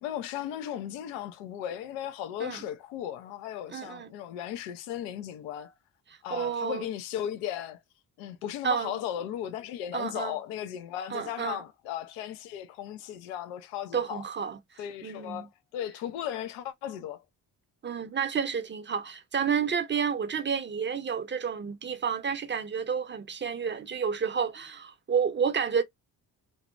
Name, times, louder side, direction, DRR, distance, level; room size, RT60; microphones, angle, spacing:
voice 1, 0.0-5.7 6.2-7.8 8.2-14.2 14.8-17.2, left 10 dB, 85° left, 0.6 m, -36 dB
voice 2, 3.7-4.1 6.3-6.8 8.6-9.0 9.9-10.4 11.1-11.6 13.9-14.6 15.0-15.5 17.8-25.8, right 6 dB, 25° right, 0.5 m, -30 dB
2.7 x 2.1 x 2.3 m
hypercardioid pair, 45°, 49 cm